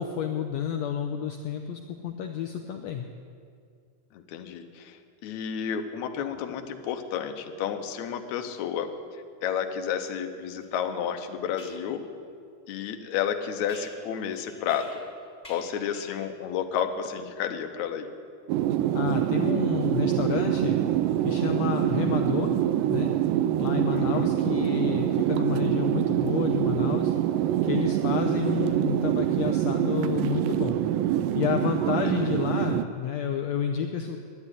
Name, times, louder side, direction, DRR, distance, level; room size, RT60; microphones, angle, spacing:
voice 1, 0.0-3.1 18.9-20.8 21.2-22.5 22.9-23.1 23.6-27.1 27.6-30.8 31.3-34.2, left 8 dB, 85° left, 5 dB, 1.5 m, -30 dB
voice 2, 4.1-8.9 9.1-12.0 12.7-14.9 15.5-18.1 23.9-24.3, left 8 dB, 70° left, 6 dB, 2.1 m, -31 dB
sound 1, 10.6-10.7 11.6-11.8 13.7-15.1 15.4-16.3, left 1 dB, 15° left, 2.8 m, -49 dB
sound 2, 18.5-32.9, right 12 dB, 85° right, 2.1 m, -25 dB
11.5 x 11.0 x 9.8 m, 2.2 s
omnidirectional pair, 3.8 m